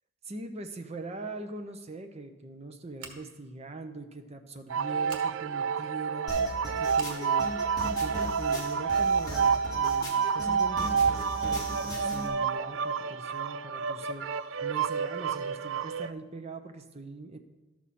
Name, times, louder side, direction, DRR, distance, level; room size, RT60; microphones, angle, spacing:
voice 1, 0.2-7.5 7.8-17.4, right 2 dB, 30° right, 6 dB, 0.7 m, -42 dB
Scissors, 3.0-3.5 5.0-5.3 6.9-7.2, right 4 dB, 90° right, 1.3 m, -46 dB
sound 1, 4.7-16.1, right 6 dB, 65° right, 0.3 m, -29 dB
sound 2, 6.3-12.3, equal, 20° left, 2.2 m, -38 dB
12.5 x 6.1 x 4.3 m, 1.2 s
head